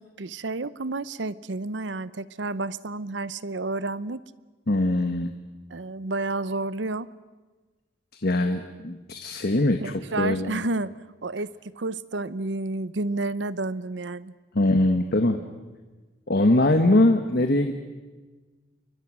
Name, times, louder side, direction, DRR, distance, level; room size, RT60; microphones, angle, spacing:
voice 1, 0.0-4.2 5.7-7.1 9.8-10.9 11.2-14.3, right 2 dB, 70° right, 17 dB, 0.8 m, -30 dB
voice 2, 4.7-5.4 8.1-10.6 14.5-15.4 16.3-17.7, left 1 dB, 55° left, 7 dB, 1.3 m, -22 dB
29.0 x 23.5 x 6.3 m, 1.3 s
head